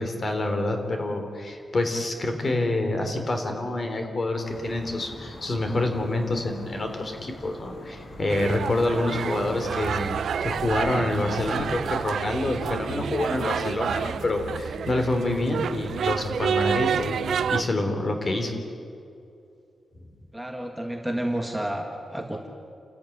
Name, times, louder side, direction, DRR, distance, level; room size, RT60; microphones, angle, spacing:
voice 1, 0.0-10.2 10.4-17.2 17.5-18.5, left 2 dB, 35° left, 5 dB, 3.5 m, -27 dB
sound 1, 4.4-9.9, left 1 dB, 65° left, 6.0 m, -44 dB
sound 2, 8.3-17.6, right 7 dB, 75° right, 0.7 m, -29 dB
voice 2, 20.3-22.5, right 1 dB, 5° right, 2 dB, 1.8 m, -30 dB
29.0 x 13.5 x 10.0 m, 2.5 s
wide cardioid pair, 160°, 0 cm